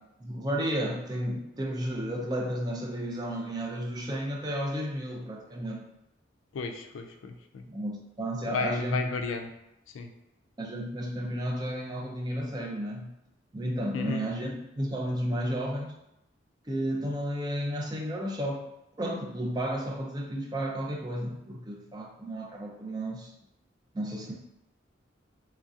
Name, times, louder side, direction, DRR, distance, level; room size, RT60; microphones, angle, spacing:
voice 1, 0.2-5.8 7.7-9.0 10.6-13.1 13.5-15.9 16.7-18.6 19.0-23.3 23.9-24.3, equal, 20° right, -1 dB, 0.4 m, -32 dB
voice 2, 6.5-7.7 8.5-9.5 9.9-10.1 13.9-14.2, left 4 dB, 85° left, 5 dB, 0.3 m, -33 dB
3.1 x 2.6 x 2.4 m, 0.86 s
head